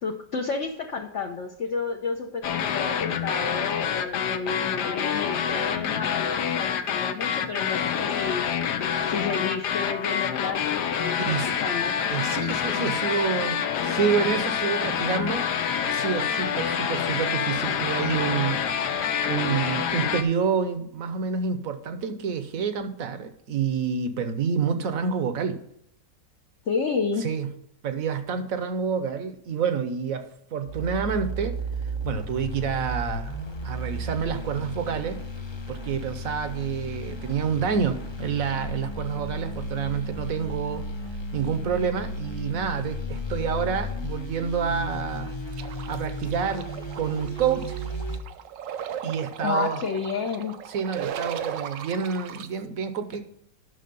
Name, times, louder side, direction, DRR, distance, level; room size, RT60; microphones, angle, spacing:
voice 1, 0.0-8.5 9.1-11.3 11.6-11.9 26.7-27.3 49.4-50.6, left 5 dB, 55° left, 1 dB, 1.0 m, -31 dB
sound 1, 2.4-20.2, left 8 dB, 75° left, 1.3 m, -27 dB
voice 2, 12.1-18.9 19.2-25.6 27.2-27.5 27.8-31.6 32.0-33.3 33.6-35.2 35.7-40.9 41.3-45.3 45.9-47.8 49.0-49.8 50.7-53.2, right 6 dB, 60° right, 9 dB, 1.2 m, -28 dB
sound 2, 30.6-48.2, equal, 25° left, 0.7 m, -34 dB
sound 3, 45.5-52.5, right 9 dB, 85° right, 1.3 m, -37 dB
10.0 x 6.3 x 5.4 m, 0.69 s
omnidirectional pair, 1.9 m